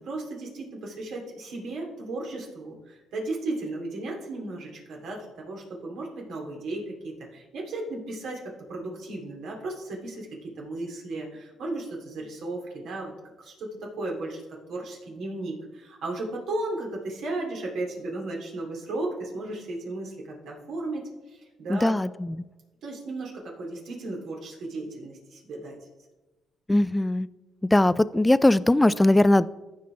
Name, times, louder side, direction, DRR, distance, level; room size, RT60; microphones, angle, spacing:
voice 1, 0.0-13.1 13.4-14.4 14.7-22.0 22.8-25.8, right 2 dB, 80° right, -1 dB, 2.7 m, -35 dB
voice 2, 21.7-22.4 26.7-27.3 27.7-29.5, left 1 dB, 10° left, 16 dB, 0.3 m, -20 dB
14.5 x 5.6 x 3.3 m, 1.1 s
cardioid pair, 90°, 0 cm